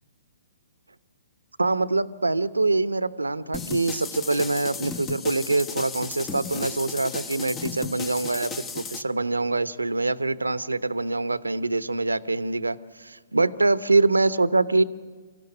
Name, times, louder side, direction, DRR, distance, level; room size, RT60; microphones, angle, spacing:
voice 1, 1.6-14.8, right 3 dB, 85° right, 14 dB, 1.0 m, -24 dB
sound 1, 3.5-9.0, left 5 dB, 20° left, 1.1 m, -35 dB
26.0 x 15.0 x 9.9 m, 1.5 s
figure-of-eight pair, 125°, 0 cm